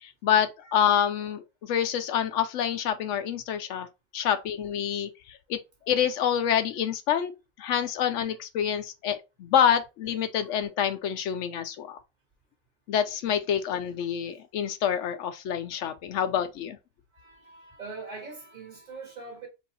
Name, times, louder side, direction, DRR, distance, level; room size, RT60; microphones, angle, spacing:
voice 1, 0.0-3.9 4.1-5.6 5.9-7.3 7.6-12.0 12.9-16.8, left 9 dB, 85° left, 0.9 m, -27 dB
voice 2, 17.1-19.5, right 4 dB, 40° right, 2.0 m, -42 dB
4.6 x 2.6 x 4.0 m
omnidirectional pair, 1.2 m